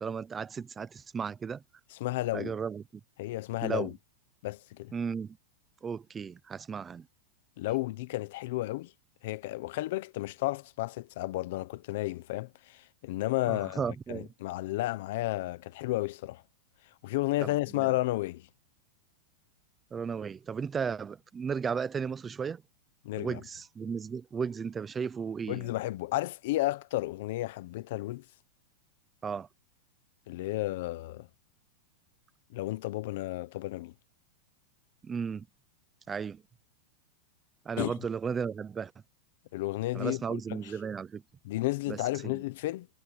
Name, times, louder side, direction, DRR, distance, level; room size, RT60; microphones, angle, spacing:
voice 1, 0.0-1.6 2.3-2.8 3.6-3.9 4.9-5.4 5.8-7.1 13.5-14.3 17.4-17.5 17.8-17.9 19.9-22.6 23.2-25.7 29.2-29.5 35.0-35.5 36.1-36.4 37.7-38.9 39.9-41.2 41.9-42.0 42.2-42.4, right 6 dB, 15° right, 0.7 m, -34 dB
voice 2, 1.9-2.5 3.2-3.9 4.4-4.9 7.6-8.9 9.2-16.4 17.0-18.5 23.0-23.4 25.5-28.2 30.3-31.3 32.5-33.9 37.8-37.9 39.5-40.7 41.4-42.9, left 18 dB, 60° left, 1.0 m, -32 dB
supercardioid pair, 160°, 0 cm